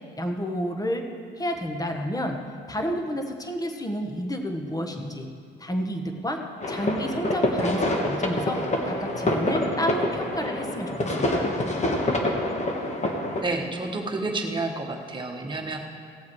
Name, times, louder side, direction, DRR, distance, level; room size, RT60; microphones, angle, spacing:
voice 1, 0.2-1.0 1.4-2.4 2.7-5.3 5.6-6.4 6.7-8.6 8.8-11.5, equal, 20° left, 4 dB, 1.3 m, -30 dB
sound 1, 6.6-13.4, left 1 dB, 35° left, 1.5 m, -26 dB
voice 2, 13.4-15.8, right 2 dB, 25° right, 1 dB, 1.5 m, -30 dB
17.0 x 7.1 x 4.8 m, 2.2 s
cardioid pair, 90°, 20 cm